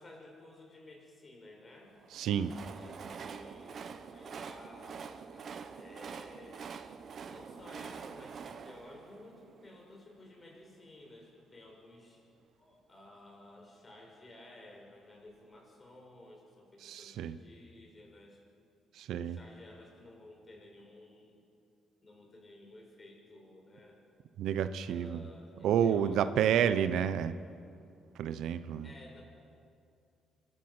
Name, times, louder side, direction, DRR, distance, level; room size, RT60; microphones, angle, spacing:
voice 1, 0.0-2.0 2.5-6.8 7.2-12.2 12.6-18.4 19.2-21.3 22.0-24.0 24.8-27.1 28.8-29.2, left 1 dB, 30° left, 1 dB, 6.1 m, -54 dB
Train, 2.0-10.1, right 6 dB, 55° right, 1.1 m, -46 dB
voice 2, 2.1-2.5 16.8-17.4 18.9-19.4 24.4-25.2 25.6-27.3 28.2-28.9, right 9 dB, 80° right, 13 dB, 0.8 m, -30 dB
26.0 x 13.0 x 7.9 m, 2.4 s
cardioid pair, 90°, 0 cm